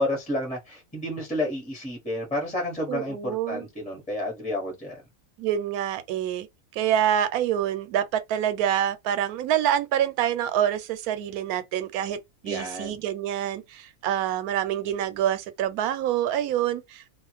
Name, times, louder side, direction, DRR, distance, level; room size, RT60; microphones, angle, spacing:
voice 1, 0.0-5.0 12.4-13.0, left 1 dB, 5° left, 1.0 m, -30 dB
voice 2, 2.9-3.7 5.4-6.5 6.7-12.2 12.4-17.0, right 10 dB, 85° right, 1.1 m, -26 dB
2.4 x 2.4 x 3.1 m
omnidirectional pair, 1.5 m